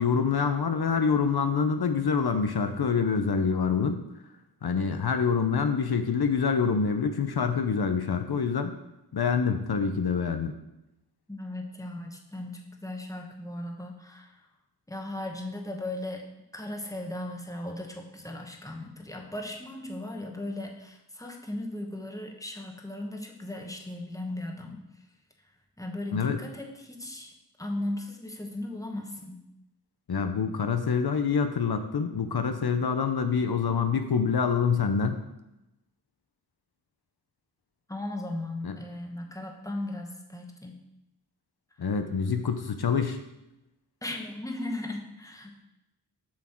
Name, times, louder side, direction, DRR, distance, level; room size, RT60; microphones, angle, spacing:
voice 1, 0.0-4.0 4.6-8.7 9.1-10.5 26.1-26.4 30.1-35.2 38.6-38.7 41.8-43.2, left 6 dB, 70° left, 7 dB, 0.7 m, -26 dB
voice 2, 11.3-14.4 14.9-16.2 16.5-24.8 25.8-27.3 27.6-29.4 37.9-40.7 44.0-45.6, left 1 dB, 10° left, 2 dB, 1.2 m, -37 dB
7.3 x 6.3 x 4.4 m, 0.90 s
wide cardioid pair, 55°, 39 cm